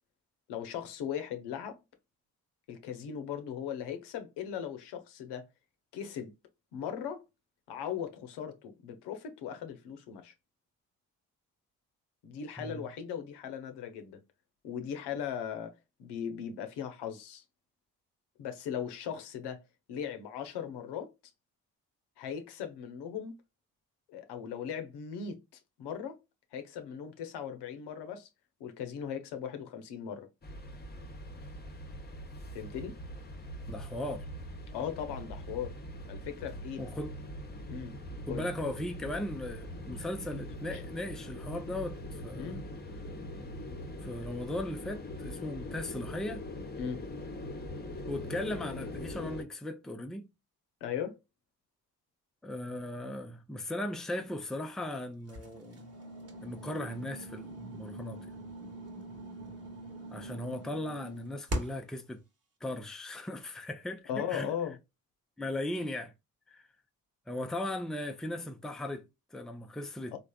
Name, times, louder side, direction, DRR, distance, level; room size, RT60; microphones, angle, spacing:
voice 1, 0.5-1.8 2.7-5.5 5.9-6.3 6.7-7.2 7.7-10.3 12.2-14.2 14.6-15.7 16.0-17.4 18.4-19.6 19.9-21.1 22.2-23.4 24.1-25.4 25.8-26.2 26.5-28.3 28.6-30.3 32.5-33.0 34.7-35.8 36.1-36.8 37.7-38.0 38.3-38.5 40.7-40.8 42.4-42.6 46.8-47.0 50.8-51.2 64.1-64.8 70.1-70.2, left 8 dB, 75° left, 0.7 m, -38 dB
sound 1, 30.4-49.4, left 1 dB, 25° left, 0.9 m, -42 dB
voice 2, 33.7-34.3 36.8-37.2 38.3-42.6 44.0-46.4 48.1-50.3 52.4-55.9 56.4-58.3 60.1-62.2 62.6-64.5 65.4-66.1 66.5-66.7 67.3-70.1, left 1 dB, ahead, 0.5 m, -37 dB
sound 2, 55.3-62.0, right 1 dB, 35° right, 1.2 m, -42 dB
3.3 x 2.4 x 2.2 m
hypercardioid pair, 45°, 41 cm